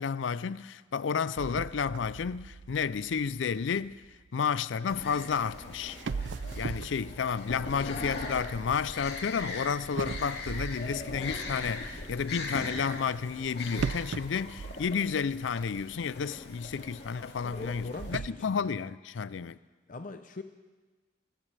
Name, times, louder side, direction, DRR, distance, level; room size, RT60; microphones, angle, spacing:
voice 1, 0.0-4.0 4.3-6.0 6.6-19.6, left 6 dB, 90° left, 0.4 m, -31 dB
sound 1, 1.4-4.5 5.5-5.6 6.0-9.3 10.0-11.8 13.7-15.5 15.8-15.9 16.5-16.6 17.6-18.3, right 4 dB, 75° right, 0.4 m, -39 dB
sound 2, 4.9-18.2, left 2 dB, 60° left, 2.4 m, -41 dB
voice 2, 17.4-18.7 19.9-20.4, left 3 dB, 45° left, 0.6 m, -42 dB
26.5 x 15.0 x 3.4 m
head